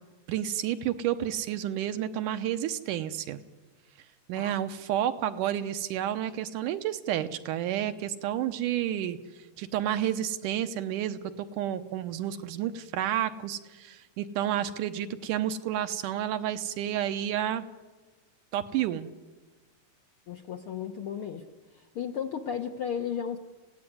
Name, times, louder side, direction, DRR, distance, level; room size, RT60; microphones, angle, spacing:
voice 1, 0.3-3.4 4.3-9.2 9.6-17.7 18.5-19.1, right 11 dB, 80° right, 9 dB, 2.5 m, -30 dB
voice 2, 20.3-21.4 21.7-23.4, left 8 dB, 65° left, 5 dB, 1.3 m, -34 dB
27.5 x 16.5 x 9.5 m, 1.3 s
omnidirectional pair, 3.7 m